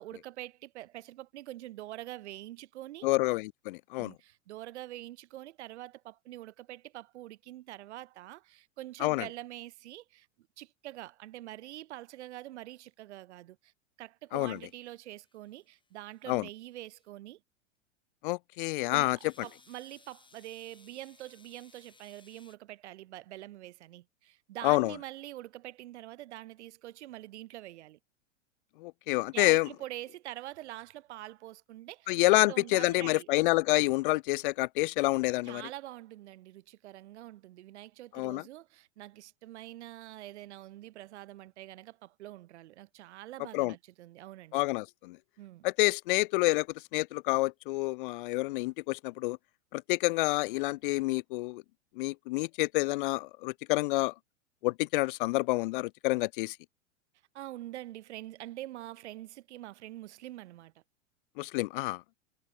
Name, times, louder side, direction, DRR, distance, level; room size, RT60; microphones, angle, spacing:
voice 1, 0.0-3.1 4.0-10.3 10.6-13.7 14.0-17.4 18.9-28.0 29.3-33.3 35.4-44.6 45.4-45.7 57.3-60.8, right 15 dB, 60° right, 1.1 m, -45 dB
voice 2, 3.0-4.1 9.0-9.3 14.3-14.6 16.3-16.5 18.2-19.2 24.6-24.9 28.8-29.7 32.1-35.6 38.1-38.4 43.5-43.7 44.5-45.2 45.6-49.4 49.7-51.6 52.0-54.1 54.6-56.6 61.4-62.0, left 21 dB, 40° left, 0.5 m, -28 dB
sound 1, 14.4-17.1 19.2-22.6, left 4 dB, 10° left, 6.6 m, -63 dB
figure-of-eight pair, 100°, 39 cm